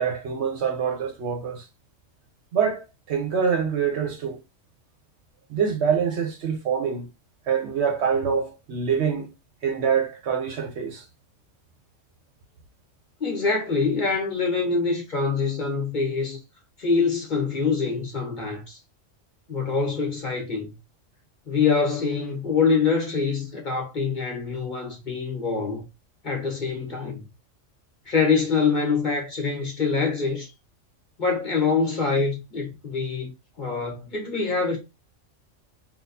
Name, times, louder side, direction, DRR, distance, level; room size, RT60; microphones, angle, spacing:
voice 1, 0.0-1.7 2.5-4.4 5.5-7.1 7.5-9.3 9.6-11.0, right 7 dB, 65° right, 0.9 m, -25 dB
voice 2, 13.2-16.4 16.8-18.8 19.5-20.7 21.5-25.8 26.2-27.2 28.1-30.5 31.2-33.3 33.6-34.8, left 4 dB, 40° left, 1.1 m, -25 dB
4.0 x 2.3 x 2.6 m
omnidirectional pair, 1.3 m